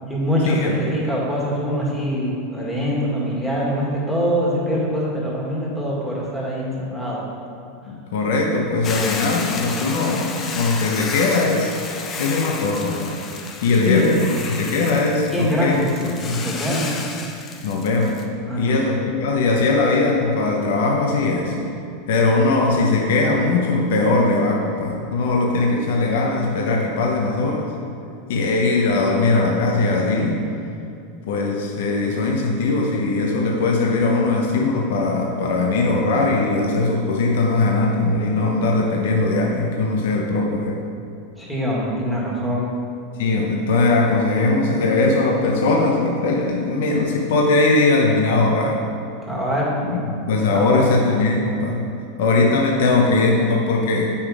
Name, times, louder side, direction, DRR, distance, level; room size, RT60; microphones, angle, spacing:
voice 1, 0.0-7.2 13.9-14.1 15.3-15.9 16.4-17.0 18.5-18.8 41.4-42.6 49.3-49.7 50.5-50.8, equal, 5° left, -6 dB, 1.9 m, -23 dB
voice 2, 7.9-11.7 12.2-13.2 13.6-16.5 17.6-18.2 18.6-21.5 22.1-27.7 28.3-30.4 31.3-40.8 43.2-48.8 49.8-51.8 52.2-54.1, left 3 dB, 75° left, 0 dB, 1.0 m, -20 dB
Hiss / Boiling, 8.8-18.2, left 4 dB, 25° left, 0.7 m, -32 dB
8.7 x 5.7 x 4.8 m, 2.5 s
supercardioid pair, 150°, 0 cm